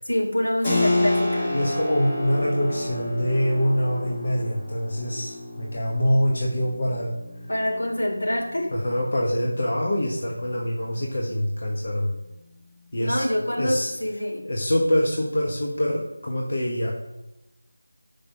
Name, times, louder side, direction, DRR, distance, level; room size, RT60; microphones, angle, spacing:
voice 1, 0.0-1.5 7.5-8.7 12.9-14.5, equal, 80° left, -2 dB, 2.9 m, -26 dB
Keyboard (musical), 0.6-11.0, left 2 dB, 15° left, 1.2 m, -30 dB
voice 2, 1.5-7.2 8.7-12.1 12.9-13.3 13.6-13.9 14.4-16.9, equal, 50° left, -2 dB, 1.1 m, -25 dB
5.8 x 5.3 x 5.8 m, 0.94 s
figure-of-eight pair, 170°, 0 cm